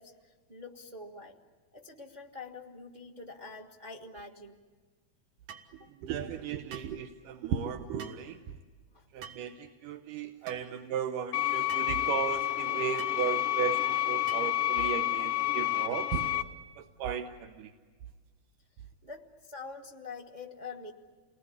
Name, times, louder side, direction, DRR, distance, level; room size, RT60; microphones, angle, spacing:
voice 1, 0.0-1.4 1.7-4.6 5.8-5.9 8.9-9.1 19.0-20.9, left 4 dB, 35° right, 2 dB, 0.6 m, -45 dB
sound 1, 5.5-5.7 6.7-7.0 8.0-8.2 9.2-9.5 10.5-10.6 11.7-11.9 13.0-13.2 14.3-14.6, right 7 dB, 65° right, 2.8 m, -46 dB
voice 2, 6.0-8.4 9.1-16.3 16.8-17.7, right 8 dB, 85° right, 6 dB, 2.6 m, -35 dB
sound 2, 11.3-16.4, left 13 dB, 70° left, 1.5 m, -29 dB
29.5 x 20.0 x 9.7 m, 1.5 s
omnidirectional pair, 3.6 m